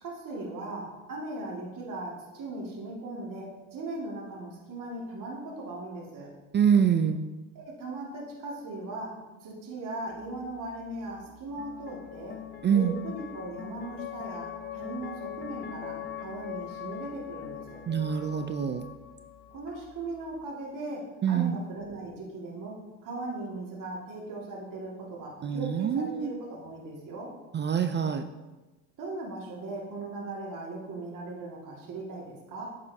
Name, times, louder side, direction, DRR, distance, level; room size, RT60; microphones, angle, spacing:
voice 1, 0.0-6.3 7.5-9.1 9.4-12.4 12.7-17.8 19.5-27.3 29.0-32.7, right 2 dB, 45° right, -4 dB, 2.1 m, -38 dB
voice 2, 6.5-7.3 12.6-12.9 17.9-18.9 21.2-21.6 25.4-26.3 27.5-28.2, right 7 dB, 25° right, 9 dB, 0.4 m, -25 dB
sound 1, 10.1-20.4, left 10 dB, 25° left, 0.8 m, -42 dB
8.9 x 5.5 x 2.7 m, 1.2 s
supercardioid pair, 75°, 43 cm